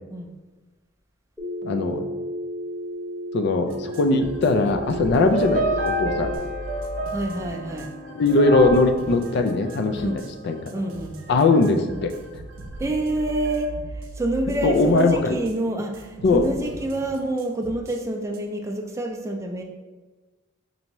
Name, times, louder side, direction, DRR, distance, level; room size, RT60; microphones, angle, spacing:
Telephone, 1.4-6.4, equal, 5° left, 0.8 m, -33 dB
voice 1, 1.6-2.0 3.3-6.3 8.2-10.1 10.4-10.6 11.3-12.1 14.6-15.4 16.2-16.4, left 3 dB, 55° left, 6 dB, 0.3 m, -20 dB
sound 1, 3.7-15.6 15.9-18.0 18.3-18.4, right 2 dB, 75° right, 0.5 m, -39 dB
sound 2, 5.1-10.5, equal, 40° right, 0.9 m, -30 dB
voice 2, 7.1-7.9 9.9-10.2 10.7-11.2 12.8-19.6, right 1 dB, 15° right, 1 dB, 0.4 m, -27 dB
4.4 x 2.7 x 3.0 m, 1.3 s
head